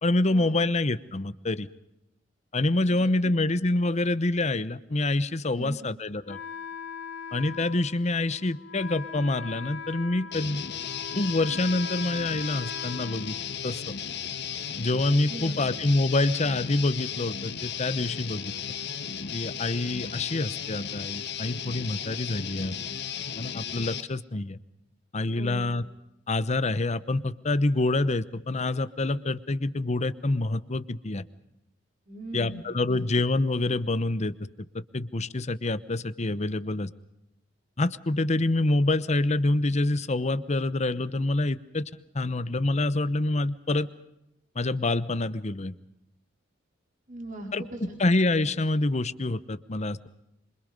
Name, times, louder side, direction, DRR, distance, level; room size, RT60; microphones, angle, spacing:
voice 1, 0.0-1.7 2.5-6.4 7.3-10.7 11.1-13.3 13.6-13.8 14.8-18.5 19.3-22.8 23.4-24.6 25.1-25.8 26.3-31.2 32.3-34.3 34.9-36.9 37.8-41.8 42.1-43.9 44.5-45.7 47.5-47.6 48.0-50.1, left 2 dB, 35° left, 14 dB, 0.9 m, -26 dB
voice 2, 3.0-3.3 5.5-5.8 15.2-15.6 25.3-25.7 32.1-32.6 32.9-33.0 47.1-48.0, right 1 dB, 45° right, 1 dB, 4.8 m, -40 dB
Wind instrument woodwind instrument, 6.3-14.0, left 5 dB, 75° left, 2.5 m, -41 dB
Guitar, 10.3-24.0, left 8 dB, 60° left, 1.7 m, -35 dB
27.0 x 25.0 x 5.4 m, 0.87 s
head